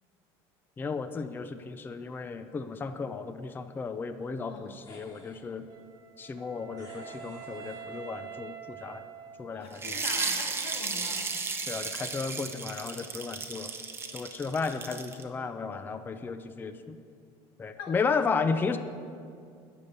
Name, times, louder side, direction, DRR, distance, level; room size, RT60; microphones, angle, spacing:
voice 1, 0.8-5.7 6.2-9.1 9.4-9.8 11.7-13.7 14.1-17.0 17.6-18.8, left 5 dB, 15° left, 9 dB, 0.4 m, -33 dB
voice 2, 4.5-4.8 9.5-11.3 17.8-18.0, left 5 dB, 90° left, 2 dB, 1.8 m, -42 dB
sound 1, 4.8-5.5 6.8-8.4 9.9-11.3, left 2 dB, 30° left, 2.8 m, -52 dB
Wind instrument woodwind instrument, 5.7-9.9, right 8 dB, 35° right, 1.8 m, -46 dB
sound 2, 9.8-15.2, right 4 dB, 20° right, 0.9 m, -34 dB
9.8 x 6.9 x 8.1 m, 2.3 s
cardioid pair, 135°, 12 cm